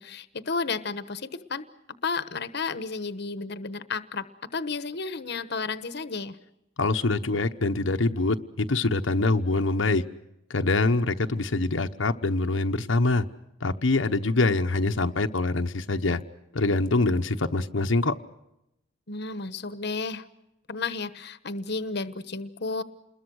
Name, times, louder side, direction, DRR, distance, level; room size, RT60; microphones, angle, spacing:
voice 1, 0.0-1.7 2.0-4.2 4.5-6.4 19.1-20.3 20.7-22.8, left 4 dB, 60° left, 12 dB, 1.1 m, -32 dB
voice 2, 6.8-10.0 10.5-13.2 13.6-16.2 16.5-18.1, left 2 dB, 90° left, 5 dB, 1.1 m, -24 dB
28.5 x 21.5 x 6.4 m, 0.89 s
head